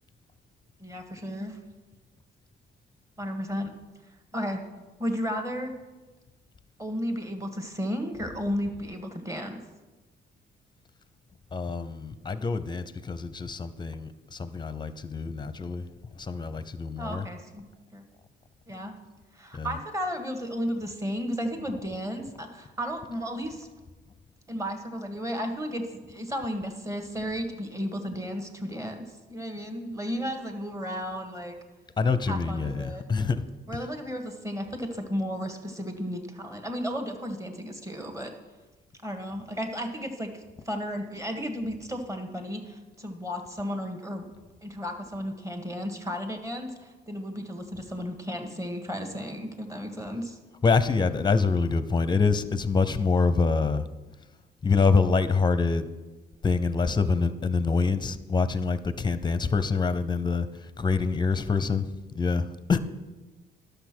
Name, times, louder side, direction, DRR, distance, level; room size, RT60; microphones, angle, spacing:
voice 1, 0.8-1.6 3.2-3.7 4.3-4.6 5.0-5.7 6.8-9.6 17.0-17.6 17.9-18.0 18.7-18.9 19.3-23.7 24.5-31.5 32.3-33.0 33.7-38.3 39.0-44.2 44.6-50.4, equal, 15° right, 5 dB, 1.6 m, -33 dB
voice 2, 11.5-15.8 16.2-17.3 19.5-19.7 32.0-33.4 50.6-53.8 54.6-55.9 56.4-60.5 60.8-61.9 62.2-62.8, left 4 dB, 20° left, 13 dB, 0.7 m, -25 dB
11.0 x 6.7 x 6.1 m, 1.2 s
cardioid pair, 90°, 20 cm